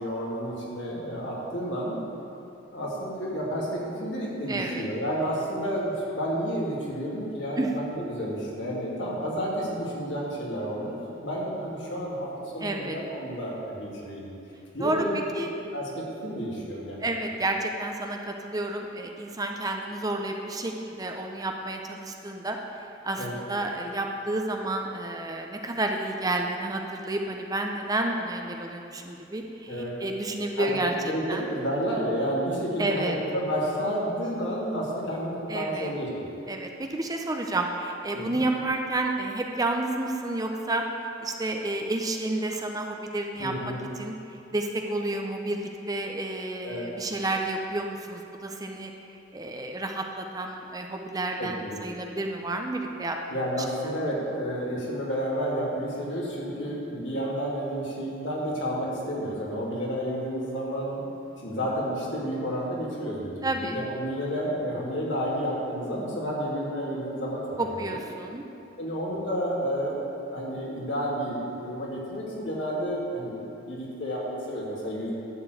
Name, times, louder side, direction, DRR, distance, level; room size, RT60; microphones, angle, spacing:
voice 1, 0.0-2.0 2.7-3.7 4.0-12.3 12.5-14.3 14.7-15.9 16.2-17.0 23.1-23.3 29.7-30.0 30.6-30.8 31.0-36.1 38.1-38.4 43.4-43.8 46.6-46.8 51.4-51.8 53.3-61.0 61.4-68.0 68.8-75.1, equal, 70° left, -5 dB, 2.4 m, -31 dB
voice 2, 4.5-4.9 7.6-7.7 12.6-13.0 14.8-15.5 17.0-30.9 31.3-31.5 32.8-33.2 35.5-35.9 36.5-44.1 44.5-48.9 49.3-53.2 63.4-63.8 67.6-68.4, right 2 dB, 20° right, 3 dB, 0.6 m, -30 dB
11.0 x 4.4 x 8.1 m, 2.8 s
head